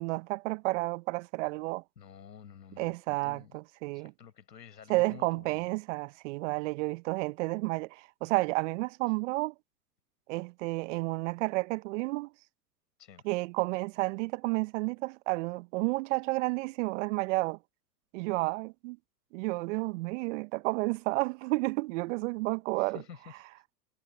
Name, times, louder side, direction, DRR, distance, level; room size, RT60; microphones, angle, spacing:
voice 1, 0.0-1.8 2.8-4.1 4.9-9.5 10.3-12.3 13.2-17.6 18.1-19.0 19.3-23.0, right 23 dB, 50° right, 0.9 m, -31 dB
voice 2, 2.0-3.6 3.9-5.7 13.0-13.3 22.8-23.4, left 7 dB, 80° left, 5.6 m, -50 dB
hypercardioid pair, 100°, 49 cm